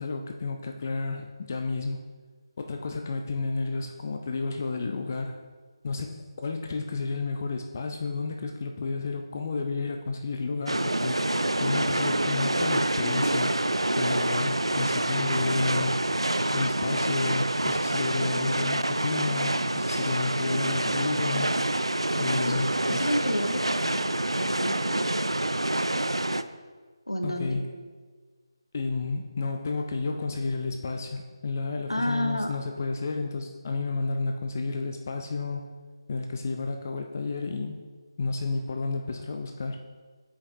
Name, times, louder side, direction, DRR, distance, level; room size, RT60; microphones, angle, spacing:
voice 1, 0.0-2.0 2.6-5.4 5.8-11.2 11.6-13.5 13.9-16.0 16.5-21.5 22.2-23.1 27.2-27.7 28.7-35.7 36.1-37.9 38.2-39.8, left 3 dB, 35° left, 4 dB, 0.4 m, -31 dB
sound 1, 10.7-26.4, right 1 dB, 85° right, 0.3 m, -27 dB
voice 2, 22.9-24.1 24.4-25.1 27.1-27.6 31.9-32.6, equal, 80° left, 5 dB, 0.9 m, -30 dB
8.5 x 5.2 x 2.7 m, 1.5 s
figure-of-eight pair, 155°, 3 cm